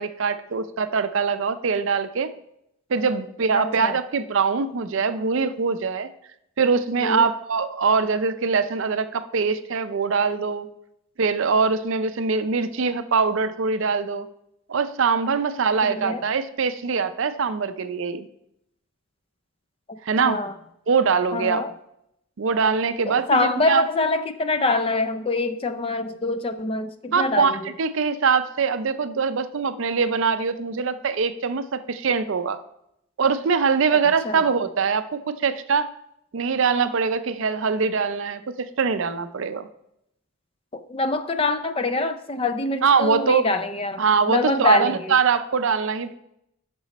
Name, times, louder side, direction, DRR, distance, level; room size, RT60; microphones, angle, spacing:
voice 1, 0.0-2.3 2.9-6.1 6.6-10.7 11.2-14.3 14.7-18.3 20.0-20.4 20.9-21.6 22.4-23.8 27.1-32.6 33.2-35.1 35.4-35.9 36.3-39.7 42.8-43.5 44.0-46.1, right 5 dB, 60° right, 11 dB, 0.5 m, -23 dB
voice 2, 3.5-4.0 7.0-7.3 15.8-16.2 20.2-20.5 21.3-21.7 23.1-27.7 34.2-34.4 40.7-45.1, left 3 dB, 25° left, 10 dB, 0.4 m, -25 dB
9.0 x 6.2 x 4.1 m, 0.79 s
head